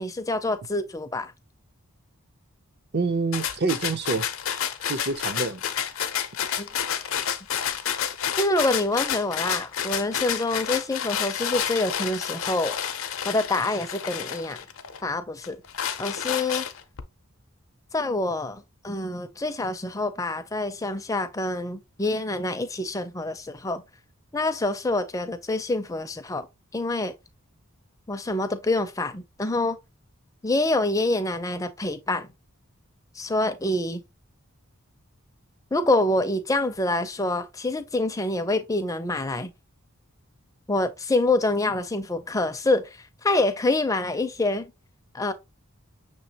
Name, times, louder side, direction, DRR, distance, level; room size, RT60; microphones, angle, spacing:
voice 1, 0.0-1.3 6.6-6.7 8.4-12.8 13.2-14.6 15.0-15.6 16.0-16.7 17.9-23.8 24.3-26.5 26.7-27.1 28.1-29.8 30.4-32.3 33.2-34.0 35.7-39.5 40.7-44.7 45.1-45.3, left 2 dB, 15° left, 0.4 m, -26 dB
voice 2, 2.9-4.3 4.9-5.6, right 3 dB, 50° right, 0.5 m, -26 dB
sound 1, 3.3-15.0 15.4-17.0, left 9 dB, 65° left, 0.5 m, -30 dB
6.3 x 3.1 x 2.8 m
head